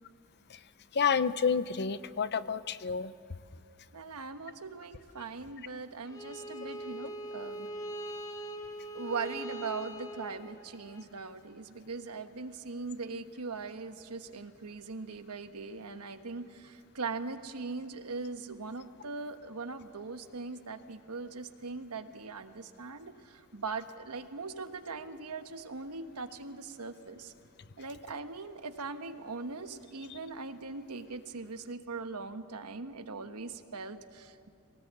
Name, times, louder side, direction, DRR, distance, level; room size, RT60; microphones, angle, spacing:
voice 1, 0.9-3.1, left 6 dB, 50° left, 15 dB, 0.6 m, -29 dB
voice 2, 3.9-7.7 8.9-27.3 27.8-34.5, right 4 dB, 85° right, 9 dB, 1.2 m, -40 dB
Bowed string instrument, 6.1-11.0, right 1 dB, 15° left, 1.0 m, -42 dB
24.0 x 18.5 x 8.2 m, 2.3 s
head